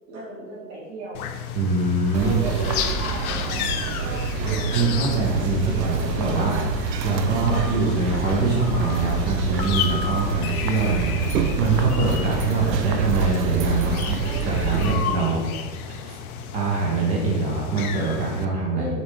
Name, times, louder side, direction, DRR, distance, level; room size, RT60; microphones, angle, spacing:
voice 1, 0.1-1.3 2.1-3.8 4.4-5.1 18.7-19.0, right 2 dB, 50° right, -6 dB, 1.4 m, -35 dB
sound 1, 1.1-18.4, left 8 dB, 60° left, 0.5 m, -33 dB
voice 2, 1.5-2.4 4.3-15.4 16.0-16.2 16.5-18.9, right 3 dB, 15° right, -3 dB, 0.4 m, -24 dB
sound 2, 2.1-14.9, right 4 dB, 90° right, 0.5 m, -27 dB
5.2 x 3.2 x 3.0 m, 1.3 s
hypercardioid pair, 110°, 48 cm